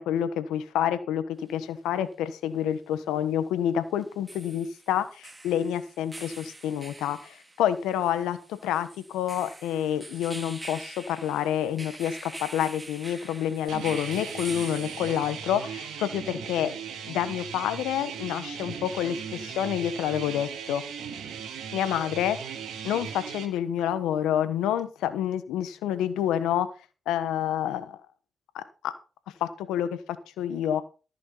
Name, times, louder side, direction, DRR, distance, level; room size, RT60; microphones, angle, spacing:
voice 1, 0.0-16.7 17.1-20.8 21.7-22.4 22.8-26.7 27.1-28.0 28.5-28.9 29.4-30.0 30.4-30.8, left 10 dB, 90° left, 13 dB, 1.2 m, -28 dB
sound 1, 1.4-1.5 4.0-15.6, right 2 dB, 25° right, 2.7 m, -44 dB
sound 2, 13.7-23.5, right 7 dB, 80° right, 2.1 m, -38 dB
14.0 x 6.4 x 5.6 m, 0.34 s
supercardioid pair, 50°, 0 cm